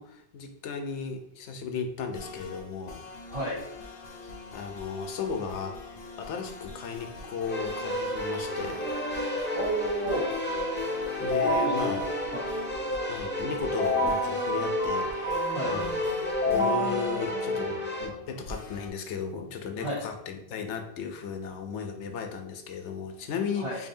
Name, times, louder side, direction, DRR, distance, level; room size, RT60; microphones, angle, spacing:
voice 1, 0.0-3.1 4.5-5.8 6.2-8.9 11.2-12.1 13.1-16.0 16.5-23.9, left 6 dB, 85° left, 5 dB, 0.9 m, -35 dB
sound 1, 2.1-18.9, left 3 dB, 55° left, 0.8 m, -45 dB
voice 2, 3.3-3.6 9.6-10.3 11.5-11.7 12.3-12.4 15.5-15.7 19.8-20.0 23.6-23.8, right 1 dB, 35° right, -6 dB, 0.6 m, -31 dB
Keyboard (musical), 7.5-18.1, left 1 dB, 15° left, 0.5 m, -29 dB
4.7 x 2.7 x 2.6 m, 0.78 s
omnidirectional pair, 1.2 m